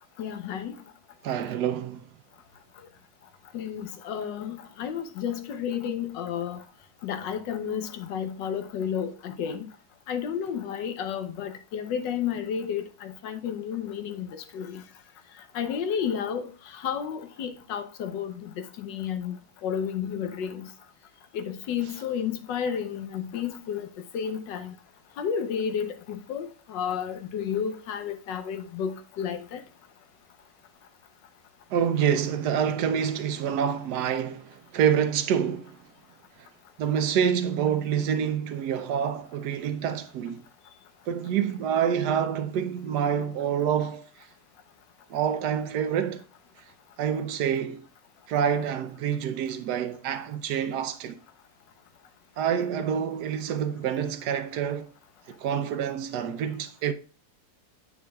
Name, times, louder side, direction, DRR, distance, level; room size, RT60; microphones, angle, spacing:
voice 1, 0.2-0.8 3.5-6.6 7.0-9.7 10.1-14.8 15.5-19.4 19.6-20.7 21.3-23.9 24.1-24.7 25.2-29.6, left 8 dB, 80° left, 1.5 m, -32 dB
voice 2, 1.2-2.0 31.7-35.8 36.8-40.4 41.1-44.1 45.1-46.2 47.0-47.8 48.3-51.2 52.4-54.9 55.4-56.9, right 8 dB, 70° right, 1.1 m, -27 dB
8.7 x 6.0 x 2.3 m
omnidirectional pair, 1.9 m